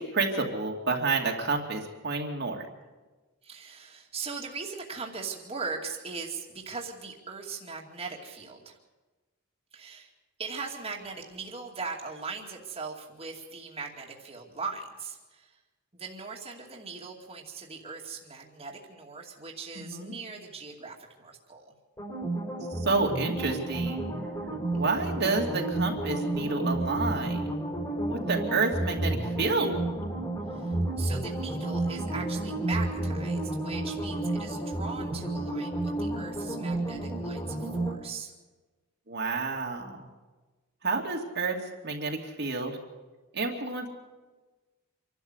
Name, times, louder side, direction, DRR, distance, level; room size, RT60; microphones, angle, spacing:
voice 1, 0.0-2.6 19.8-20.1 22.7-24.1 24.7-27.5 28.1-29.7 39.1-40.1 40.8-41.6 41.8-42.8 43.3-43.9, right 3 dB, 55° right, 1 dB, 2.5 m, -29 dB
voice 2, 3.4-8.8 9.7-10.1 10.4-15.6 15.9-21.7 24.7-25.1 30.5-38.3, right 4 dB, 30° right, -1 dB, 2.5 m, -40 dB
sound 1, 22.0-37.9, right 2 dB, 20° left, 4.4 m, -31 dB
26.5 x 12.0 x 8.1 m, 1.2 s
head